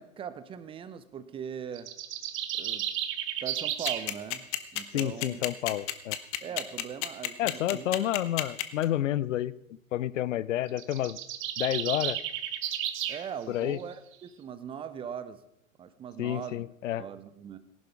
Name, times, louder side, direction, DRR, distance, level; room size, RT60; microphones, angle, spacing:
voice 1, 0.0-1.9 2.6-2.9 3.4-4.5 4.7-5.4 6.4-7.9 13.1-15.4 15.8-16.6 17.0-17.6, right 8 dB, 15° right, 13 dB, 0.5 m, -40 dB
sound 1, 1.7-4.1 10.7-13.2, right 11 dB, 30° right, 1.2 m, -33 dB
sound 2, 3.8-8.8, left 16 dB, 35° left, 1.0 m, -30 dB
voice 2, 4.9-6.2 7.4-9.5 9.9-11.2 11.6-12.2 13.5-13.8 16.2-17.1, left 13 dB, 60° left, 19 dB, 0.6 m, -30 dB
18.0 x 11.5 x 3.5 m, 0.78 s
figure-of-eight pair, 105°, 41 cm